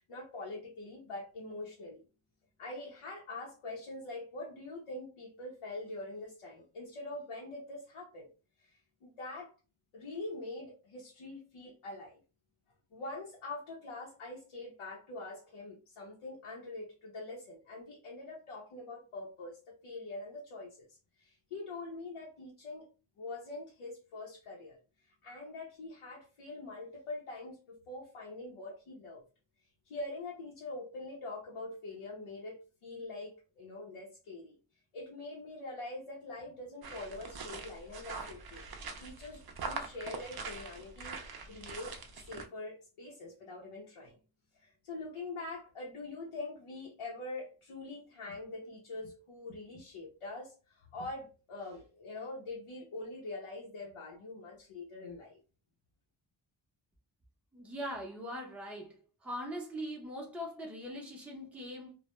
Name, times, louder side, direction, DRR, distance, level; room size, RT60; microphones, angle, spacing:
voice 1, 0.0-2.0 2.6-8.3 8.6-9.5 9.9-12.2 12.9-22.9 23.2-29.2 29.8-34.6 34.9-38.7 39.0-41.9 42.2-44.2 44.5-55.4, left 2 dB, 80° left, 0.7 m, -44 dB
sound 1, 36.8-42.5, right 4 dB, 50° right, 0.5 m, -43 dB
voice 2, 57.5-59.0 59.2-61.9, equal, 5° right, 0.6 m, -41 dB
2.2 x 2.1 x 2.9 m
wide cardioid pair, 100°, 50 cm